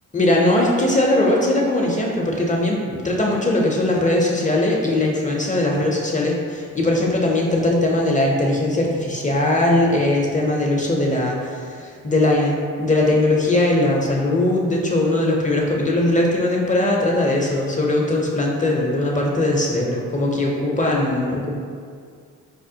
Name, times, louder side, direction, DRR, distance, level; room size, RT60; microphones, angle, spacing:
voice 1, 0.1-21.5, left 1 dB, 25° left, -2 dB, 0.5 m, -20 dB
4.9 x 2.0 x 2.7 m, 2.1 s
cardioid pair, 55°, 34 cm